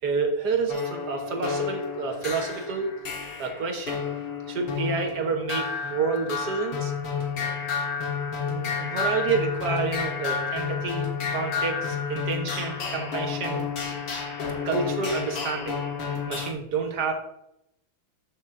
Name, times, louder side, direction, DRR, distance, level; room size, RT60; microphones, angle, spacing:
voice 1, 0.0-3.0 3.4-4.0 4.5-6.9 8.5-13.7 14.6-15.8 16.3-17.1, right 4 dB, 55° right, 3 dB, 1.7 m, -29 dB
sound 1, 0.7-16.5, left 6 dB, 65° left, 2.2 m, -31 dB
13.0 x 6.2 x 2.7 m, 0.80 s
omnidirectional pair, 2.3 m